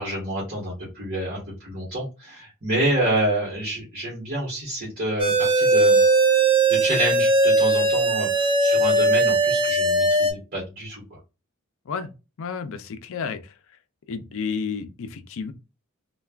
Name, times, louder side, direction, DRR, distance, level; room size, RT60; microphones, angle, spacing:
voice 1, 0.0-6.0 6.7-11.0, right 1 dB, 40° right, 1.3 m, -28 dB
sound 1, 5.2-10.3, right 2 dB, 20° right, 0.5 m, -19 dB
voice 2, 12.4-13.5 14.1-15.5, left 5 dB, 65° left, 0.4 m, -31 dB
3.3 x 2.2 x 2.3 m
head